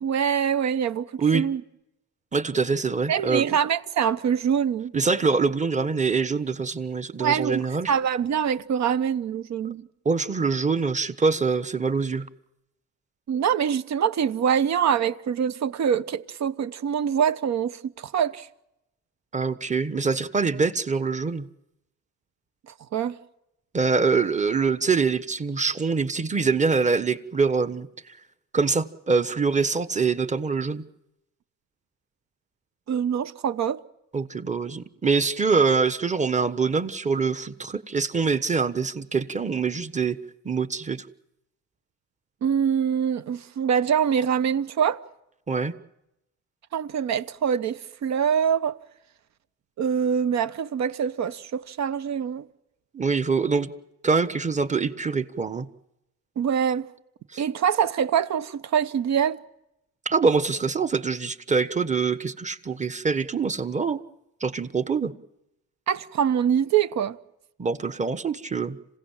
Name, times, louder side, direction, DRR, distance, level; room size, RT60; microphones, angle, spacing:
voice 1, 0.0-1.6 3.1-4.9 7.2-9.9 13.3-18.5 22.9-23.2 32.9-33.8 42.4-45.0 46.7-48.8 49.8-52.4 56.4-56.9 57.4-59.4 65.9-67.2, right 8 dB, 65° right, 1.1 m, -24 dB
voice 2, 2.3-3.5 4.9-7.9 10.0-12.3 19.3-21.5 23.7-28.2 28.5-30.8 34.1-40.2 40.4-41.1 45.5-45.7 52.9-53.7 54.0-55.7 57.3-57.4 60.0-64.0 64.4-65.1 67.6-68.8, right 4 dB, 25° right, 1.3 m, -24 dB
27.0 x 17.0 x 7.4 m
cardioid pair, 90°, 30 cm